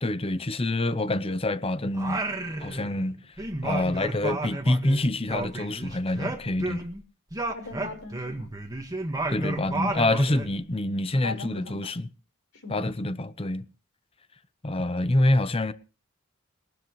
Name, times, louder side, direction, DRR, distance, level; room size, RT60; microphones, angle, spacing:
voice 1, 0.0-2.2 2.6-3.2 3.6-6.9 9.3-12.1 12.7-13.7 14.6-15.7, left 1 dB, 25° left, 0.8 m, -26 dB
Singing, 1.9-3.1 3.4-7.0 7.3-10.5, right 2 dB, 15° right, 1.6 m, -32 dB
voice 2, 7.5-8.5 11.2-11.9 12.5-12.9, left 3 dB, 75° left, 4.5 m, -39 dB
21.5 x 12.5 x 3.2 m
head